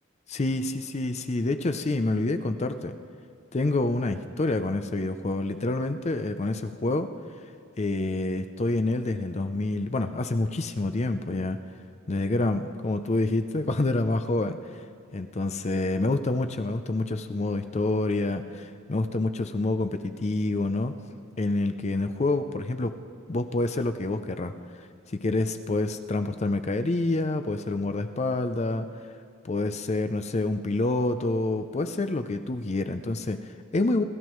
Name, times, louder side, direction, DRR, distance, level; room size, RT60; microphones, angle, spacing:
voice 1, 0.3-3.0 3.5-7.1 7.8-11.6 12.1-14.6 15.1-20.9 21.4-22.9 23.3-24.5 25.1-28.9 29.4-34.0, left 2 dB, 30° left, 9 dB, 0.5 m, -27 dB
27.5 x 13.5 x 3.1 m, 2.2 s
head